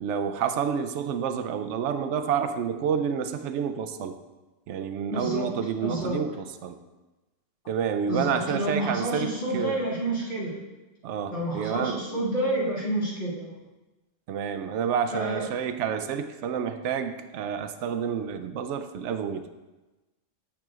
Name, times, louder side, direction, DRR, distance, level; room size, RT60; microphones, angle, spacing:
voice 1, 0.0-4.2 4.7-6.8 7.7-9.8 11.0-12.2 14.3-19.5, right 7 dB, 70° right, 9 dB, 0.9 m, -29 dB
voice 2, 5.1-5.5 5.8-6.2 8.1-10.6 11.3-13.5 15.1-15.5, right 1 dB, 65° left, -10 dB, 2.8 m, -29 dB
9.0 x 8.6 x 2.4 m, 1.1 s
omnidirectional pair, 1.3 m